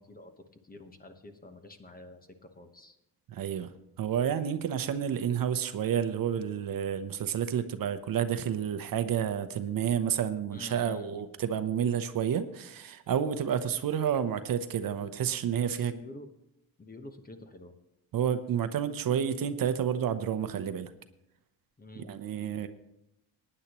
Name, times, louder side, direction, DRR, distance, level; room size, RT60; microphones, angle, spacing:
voice 1, 0.0-3.0 10.5-11.3 15.7-16.3 16.8-17.7 21.8-22.1 22.4-22.6, left 2 dB, 20° left, 7 dB, 1.1 m, -49 dB
voice 2, 3.3-3.7 4.0-15.9 18.1-20.9 22.0-22.7, right 8 dB, 55° right, 10 dB, 0.8 m, -30 dB
18.5 x 9.9 x 3.0 m, 0.86 s
cardioid pair, 130°, 42 cm